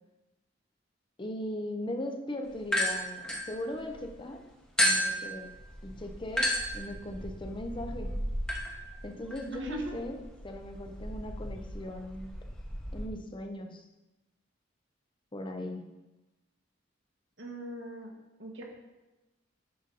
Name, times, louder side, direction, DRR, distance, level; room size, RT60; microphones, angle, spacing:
voice 1, 1.2-4.4 4.8-5.5 5.8-8.2 9.0-10.2 10.4-12.3 12.9-13.9 15.3-15.9, left 1 dB, 25° left, 4 dB, 0.8 m, -39 dB
sound 1, 2.6-4.1 4.8-13.1, equal, 5° left, 1.1 m, -33 dB
voice 2, 9.5-10.0 17.4-18.1 18.4-18.7, right 1 dB, 70° right, 0 dB, 1.5 m, -39 dB
9.5 x 5.2 x 4.1 m, 1.0 s
head